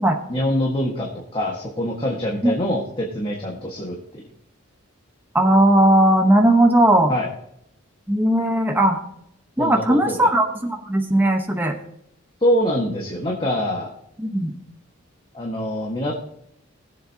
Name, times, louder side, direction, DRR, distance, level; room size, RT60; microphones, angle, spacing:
voice 1, 0.3-4.2 7.1-7.3 9.6-10.3 12.4-13.9 15.3-16.1, equal, 25° left, -2 dB, 1.6 m, -24 dB
voice 2, 5.3-7.1 8.1-9.0 9.6-11.7 14.2-14.5, right 1 dB, 10° right, 3 dB, 1.0 m, -17 dB
20.0 x 7.7 x 2.8 m, 0.74 s
head